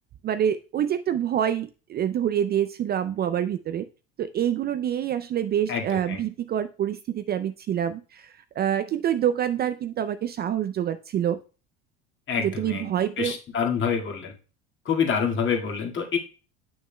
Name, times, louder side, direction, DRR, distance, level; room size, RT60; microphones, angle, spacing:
voice 1, 0.2-3.8 4.2-11.4 12.4-13.4, right 10 dB, 30° right, 11 dB, 0.4 m, -26 dB
voice 2, 5.7-6.2 12.3-12.9 13.2-14.3 14.9-16.2, left 6 dB, 40° left, 2 dB, 2.0 m, -27 dB
8.7 x 6.3 x 2.2 m, 0.34 s
hypercardioid pair, 90°, 32 cm